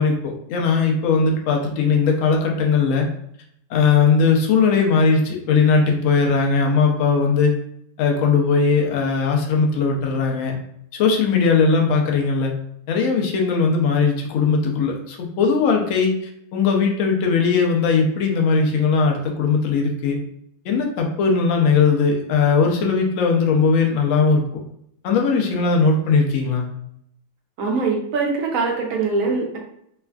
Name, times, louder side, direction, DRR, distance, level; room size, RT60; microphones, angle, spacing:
voice 1, 0.0-3.1 3.7-7.5 8.0-10.5 10.9-12.5 12.9-16.1 16.5-20.2 20.6-24.5 25.0-26.7, left 5 dB, 65° left, 1 dB, 0.9 m, -19 dB
voice 2, 27.6-29.6, right 4 dB, 70° right, 0 dB, 1.0 m, -22 dB
3.2 x 2.4 x 2.2 m, 0.73 s
omnidirectional pair, 1.6 m